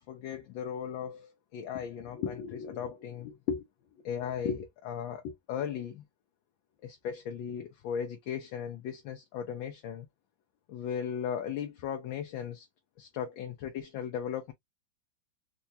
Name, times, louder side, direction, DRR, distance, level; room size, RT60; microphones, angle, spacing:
voice 1, 0.1-3.6 4.0-6.0 6.8-10.1 10.7-12.7 13.0-14.5, left 8 dB, 75° left, 1.4 m, -36 dB
4.6 x 2.2 x 2.7 m
omnidirectional pair, 2.3 m